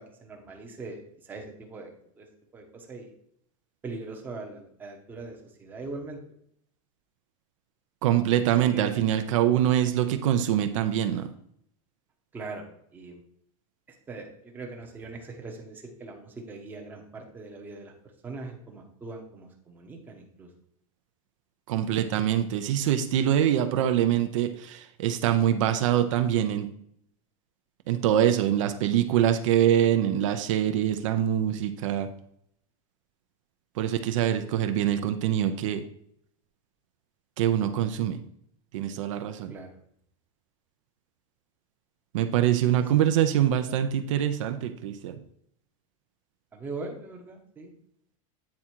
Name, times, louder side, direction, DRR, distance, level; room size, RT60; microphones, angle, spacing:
voice 1, 0.0-1.9 2.2-2.3 2.5-3.1 3.8-6.2 8.6-9.0 12.3-13.2 14.1-17.9 18.2-20.5 39.5-39.7 46.5-47.7, right 3 dB, 10° right, 1 dB, 0.8 m, -41 dB
voice 2, 8.0-11.3 21.7-26.7 27.9-32.1 33.8-35.8 37.4-38.2 38.7-39.5 42.1-45.2, right 10 dB, 60° right, 8 dB, 0.6 m, -24 dB
8.5 x 3.7 x 4.4 m, 0.70 s
supercardioid pair, 175°, 18 cm